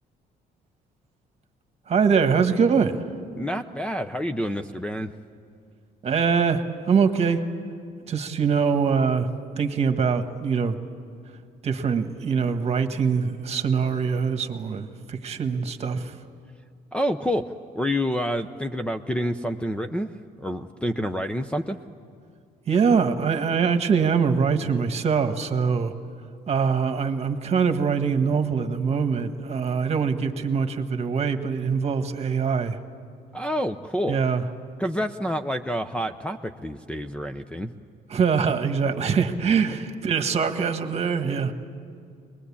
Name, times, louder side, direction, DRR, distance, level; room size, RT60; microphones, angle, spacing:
voice 1, 1.9-3.1 6.0-7.4 8.1-9.3 9.6-10.8 11.6-16.2 22.7-25.9 26.5-32.8 34.1-34.4 38.1-41.5, right 6 dB, 40° right, 8 dB, 1.5 m, -23 dB
voice 2, 3.3-5.1 16.9-20.1 20.4-21.8 33.3-34.2 34.8-37.7, equal, 5° left, 8 dB, 0.7 m, -28 dB
23.5 x 20.5 x 8.6 m, 2.3 s
cardioid pair, 110°, 17 cm